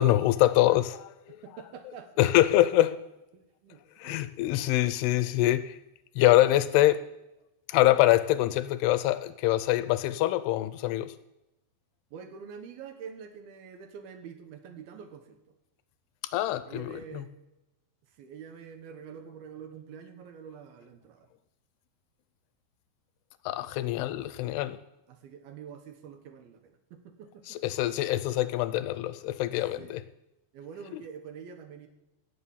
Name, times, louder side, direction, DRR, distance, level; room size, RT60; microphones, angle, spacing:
voice 1, 0.0-1.4 2.2-2.9 4.0-5.8 6.2-7.0 7.7-11.1 16.3-17.3 23.5-24.8 27.5-30.0 30.9-31.0, left 15 dB, 85° left, 13 dB, 2.7 m, -24 dB
voice 2, 1.4-2.3 3.3-4.3 12.1-15.4 16.7-17.4 18.1-21.3 24.5-24.6 25.1-27.6 29.8-30.0 30.5-31.9, right 7 dB, 70° right, 7 dB, 2.9 m, -46 dB
16.5 x 6.4 x 7.3 m, 0.92 s
omnidirectional pair, 4.7 m